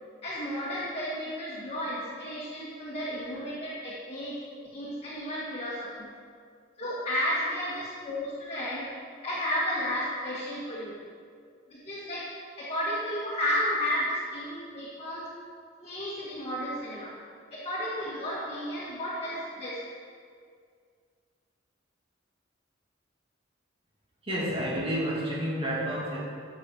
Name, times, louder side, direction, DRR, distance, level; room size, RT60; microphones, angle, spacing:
voice 1, 0.2-4.4 4.7-6.1 6.8-8.9 9.2-10.9 11.7-12.2 12.6-15.3 15.8-17.1 17.5-19.8, equal, 30° left, -8 dB, 1.7 m, -32 dB
voice 2, 24.2-26.2, equal, 30° right, -5 dB, 2.5 m, -30 dB
13.0 x 6.3 x 4.7 m, 2.1 s
head